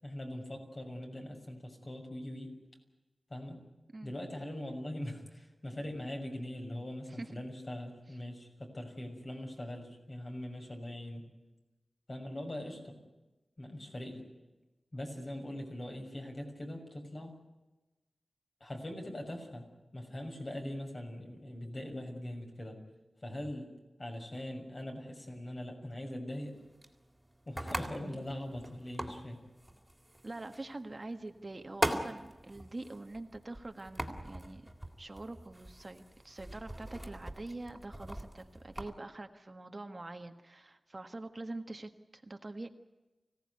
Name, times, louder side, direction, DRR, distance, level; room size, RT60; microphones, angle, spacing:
voice 1, 0.0-2.5 3.3-3.6 4.0-11.3 12.1-13.0 13.6-14.2 14.9-17.4 18.6-19.6 19.9-22.8 23.2-23.7 24.0-26.6 27.5-29.4, left 1 dB, 40° left, 3 dB, 6.4 m, -42 dB
voice 2, 7.1-7.4 30.2-34.7 35.0-42.7, right 2 dB, 35° right, 6 dB, 1.5 m, -45 dB
sound 1, 26.4-38.9, right 1 dB, 5° right, 3.5 m, -42 dB
25.5 x 17.5 x 9.6 m, 1.1 s
wide cardioid pair, 95°, 0 cm